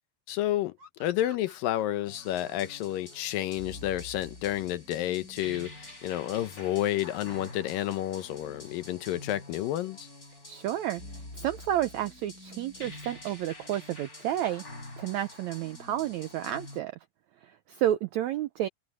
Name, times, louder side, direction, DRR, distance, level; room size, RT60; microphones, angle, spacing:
voice 1, 0.3-10.1, left 13 dB, 80° left, 2.6 m, -30 dB
sound 1, 0.8-4.2, left 3 dB, 30° right, 5.7 m, -55 dB
sound 2, 2.1-16.8, left 2 dB, 25° left, 7.1 m, -46 dB
voice 2, 10.5-11.0 11.3-14.6 15.0-17.0 17.4-18.7, right 12 dB, 80° right, 1.6 m, -31 dB
omnidirectional pair, 4.1 m